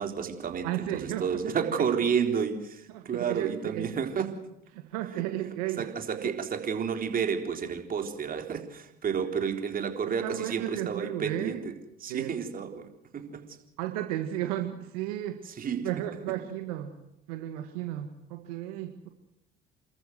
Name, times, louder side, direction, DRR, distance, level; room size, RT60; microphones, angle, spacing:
voice 1, 0.0-4.4 5.2-5.3 5.8-11.8 12.0-13.4 15.4-15.9 16.3-16.4, right 7 dB, 50° right, 5 dB, 3.9 m, -31 dB
voice 2, 0.6-1.3 2.9-3.9 4.7-5.9 6.2-6.3 10.2-11.6 12.1-12.3 13.8-15.4 15.8-17.0 17.3-19.1, right 13 dB, 85° right, 6 dB, 1.7 m, -34 dB
28.5 x 14.0 x 8.0 m, 0.86 s
hypercardioid pair, 65°, 19 cm